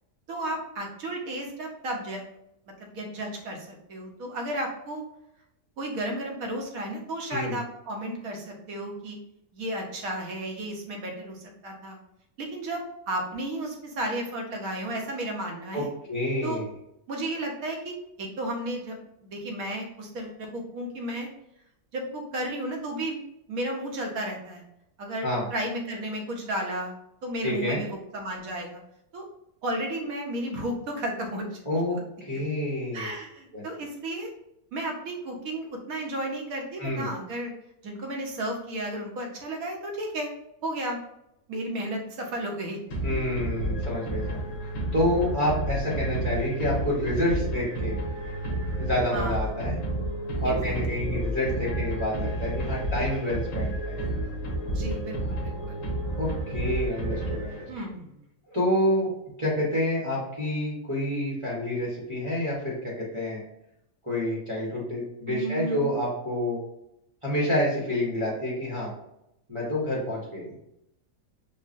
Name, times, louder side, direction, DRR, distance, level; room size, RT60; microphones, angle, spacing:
voice 1, 0.3-2.2 2.8-5.0 5.8-9.2 9.5-12.0 12.4-15.9 16.4-16.6 17.1-21.3 21.9-23.2 23.5-24.6 25.0-26.9 27.2-28.8 29.1-29.2 29.6-31.6 31.9-32.0 32.3-32.4 32.9-34.3 34.7-37.5 37.8-40.3 40.6-41.0 41.5-42.8 49.1-49.5 50.4-50.8 54.6-55.8 57.7-58.1 65.3-65.9, right 1 dB, 75° right, 1 dB, 1.3 m, -33 dB
voice 2, 15.7-16.7 25.2-25.5 27.4-27.8 31.7-32.0 32.3-33.1 33.5-33.6 36.8-37.1 43.0-44.4 44.9-48.0 48.8-49.8 50.4-54.1 56.2-57.7 58.5-59.1 59.4-63.4 64.0-66.6 67.2-68.9 69.5-70.5, left 1 dB, 25° right, -7 dB, 0.9 m, -28 dB
sound 1, 42.9-58.0, right 1 dB, 70° left, 1.2 m, -31 dB
5.4 x 2.2 x 2.5 m, 0.82 s
omnidirectional pair, 1.5 m